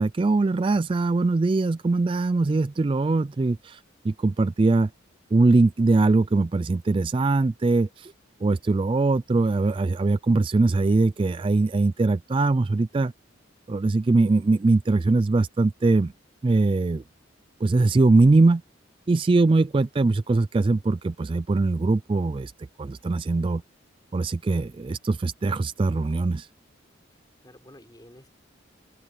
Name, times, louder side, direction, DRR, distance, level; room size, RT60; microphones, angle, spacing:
voice 1, 0.0-4.9 5.3-8.1 8.4-13.1 13.7-16.1 16.4-17.0 17.6-18.6 19.1-22.5 22.8-23.6 24.1-26.5, right 3 dB, 25° right, 0.3 m, -22 dB
voice 2, 27.1-28.3, left 1 dB, 20° left, 5.4 m, -51 dB
open air
head